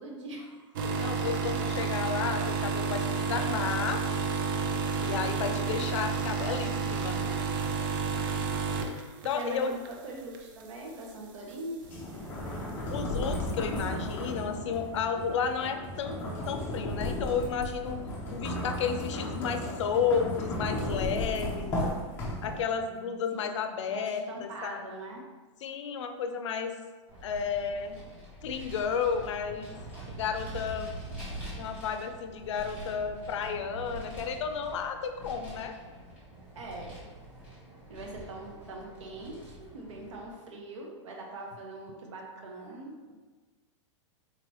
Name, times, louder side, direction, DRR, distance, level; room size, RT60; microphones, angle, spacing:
voice 1, 0.0-1.1 9.3-12.2 23.3-23.5 23.9-25.2 31.4-31.7 36.6-36.9 37.9-43.2, right 2 dB, 75° right, -1 dB, 0.8 m, -42 dB
sound 1, 0.8-9.9 10.3-10.6 11.5-11.6, right 5 dB, 45° right, 0.4 m, -30 dB
voice 2, 1.0-4.0 5.0-7.2 9.2-9.7 12.9-16.2 16.5-18.0 18.3-21.8 22.4-24.8 25.6-26.8 27.2-28.0 28.4-29.7 30.1-30.9 31.6-35.8, left 6 dB, 70° left, 7 dB, 0.5 m, -32 dB
sound 2, 11.8-22.8, left 1 dB, 15° left, 0.5 m, -34 dB
Vehicle, 27.1-40.3, right 1 dB, 10° right, 0.9 m, -44 dB
4.0 x 3.1 x 3.0 m, 1.3 s
supercardioid pair, 175°, 16 cm